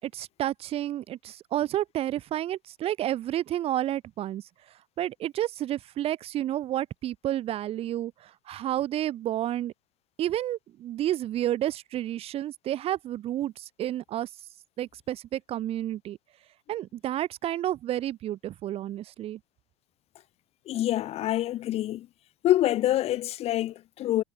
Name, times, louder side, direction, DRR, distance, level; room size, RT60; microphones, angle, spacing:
voice 1, 0.0-9.7 10.2-14.3 14.8-16.2 16.7-19.4, right 12 dB, 45° right, 3.0 m, -31 dB
voice 2, 20.7-22.1 22.4-24.2, left 14 dB, 45° left, 3.8 m, -26 dB
hypercardioid pair, 85°, 14 cm